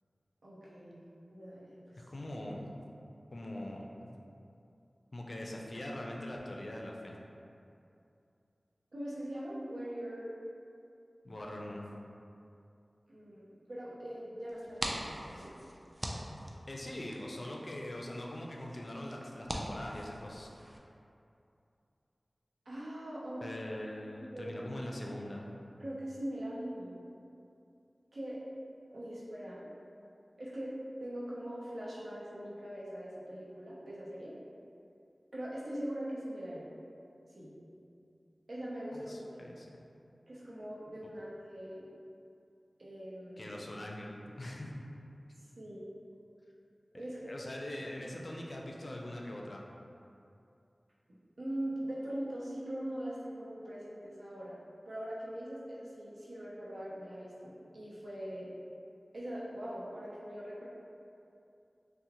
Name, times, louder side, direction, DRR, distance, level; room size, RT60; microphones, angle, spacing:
voice 1, 0.4-2.0 8.9-10.3 13.1-15.5 22.7-23.4 24.1-24.5 25.8-26.9 28.1-28.4 28.9-29.7 30.4-30.7 31.0-34.3 35.3-36.6 37.3-37.5 38.5-39.5 40.3-41.9 42.8-43.5 45.6-45.8 46.9-47.3 51.4-54.6 54.9-58.5 59.1-60.6, right 1 dB, 90° right, -7 dB, 0.6 m, -41 dB
voice 2, 2.0-2.8 3.3-4.1 5.1-7.2 11.2-11.9 16.7-20.5 23.4-25.5 38.9-39.7 43.4-44.7 46.9-49.7, left 1 dB, 60° left, -1 dB, 0.4 m, -42 dB
sound 1, 14.5-20.8, equal, 25° right, 0.3 m, -43 dB
3.7 x 2.0 x 2.8 m, 2.7 s
wide cardioid pair, 45°, 0 cm